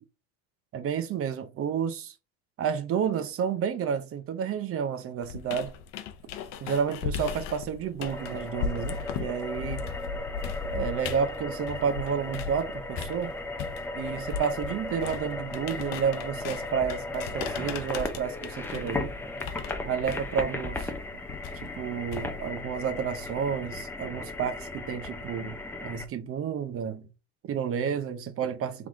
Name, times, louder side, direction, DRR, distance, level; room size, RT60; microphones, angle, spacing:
voice 1, 0.7-2.1 2.6-5.7 6.6-9.9 10.7-13.3 13.9-19.1 19.8-20.9 21.6-25.6 25.8-27.1 27.4-28.9, right 7 dB, 35° right, 0.8 m, -30 dB
sound 1, 5.2-12.6 12.9-22.6, left 7 dB, 55° left, 0.8 m, -37 dB
sound 2, 8.0-26.0, left 2 dB, 5° left, 0.5 m, -36 dB
3.7 x 3.3 x 3.6 m
supercardioid pair, 105°, 40 cm